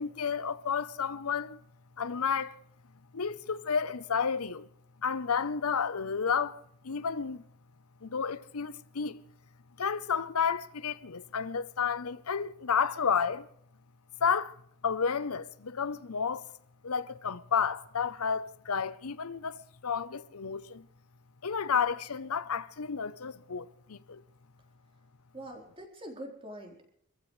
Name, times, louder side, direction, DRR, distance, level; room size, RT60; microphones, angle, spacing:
voice 1, 0.0-1.6 2.0-2.6 3.1-4.7 5.0-7.4 8.0-9.2 9.8-13.5 14.2-14.6 14.8-16.4 16.8-20.9 21.4-24.2, left 6 dB, 90° left, 0.8 m, -31 dB
voice 2, 25.3-26.9, right 1 dB, 25° right, 4.1 m, -44 dB
26.5 x 15.0 x 3.3 m
head